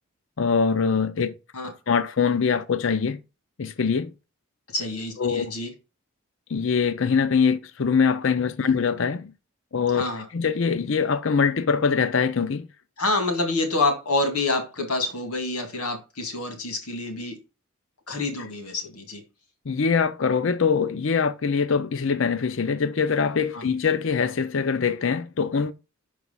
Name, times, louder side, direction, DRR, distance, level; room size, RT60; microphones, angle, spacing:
voice 1, 0.4-1.3 1.9-3.2 3.6-4.1 5.2-5.5 6.5-9.3 9.7-10.0 10.3-12.7 19.7-25.7, left 5 dB, 55° left, 0.5 m, -23 dB
voice 2, 4.7-5.7 8.6-8.7 9.9-10.3 13.0-17.3 18.1-19.2 23.5-23.6, left 2 dB, 85° left, 2.1 m, -27 dB
5.9 x 4.8 x 5.6 m
head